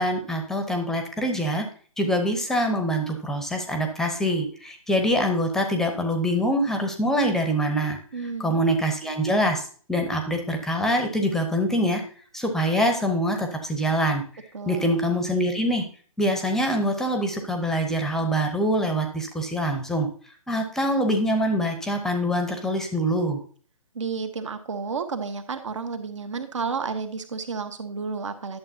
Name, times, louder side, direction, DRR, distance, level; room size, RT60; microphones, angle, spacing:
voice 1, 0.0-1.7 2.0-8.0 8.4-12.0 12.3-14.2 14.7-15.8 16.2-20.1 20.5-23.4, equal, ahead, 5 dB, 0.8 m, -24 dB
voice 2, 8.1-8.6 14.5-14.9 23.9-28.6, right 5 dB, 60° right, 8 dB, 1.2 m, -31 dB
11.0 x 7.1 x 2.7 m, 0.43 s
figure-of-eight pair, 135°, 18 cm